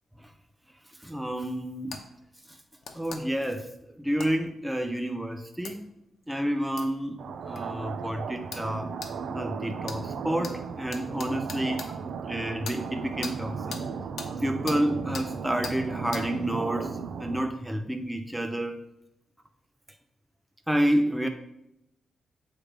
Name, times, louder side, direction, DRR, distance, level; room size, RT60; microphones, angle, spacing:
voice 1, 1.0-2.0 2.5-2.6 2.9-5.9 6.3-7.2 7.4-8.9 9.3-12.0 12.2-13.8 14.4-18.8 20.7-21.3, equal, 5° right, 6 dB, 0.4 m, -29 dB
sound 1, 1.9-2.0 2.8-3.2 4.2-4.3 5.6-5.7 6.8-6.9 7.6-7.7 8.5-8.7 9.0-9.1 9.8-10.0 10.4-10.5 10.9-11.9 12.6-12.8 13.2-13.3 13.7-13.8 14.2-14.3 14.7-14.8 15.1-15.3 15.6-15.8 16.1-16.2, left 5 dB, 70° left, 0.8 m, -38 dB
sound 2, 7.2-17.4, right 5 dB, 70° right, 0.4 m, -35 dB
7.4 x 3.3 x 5.0 m, 0.86 s
wide cardioid pair, 135°, 0 cm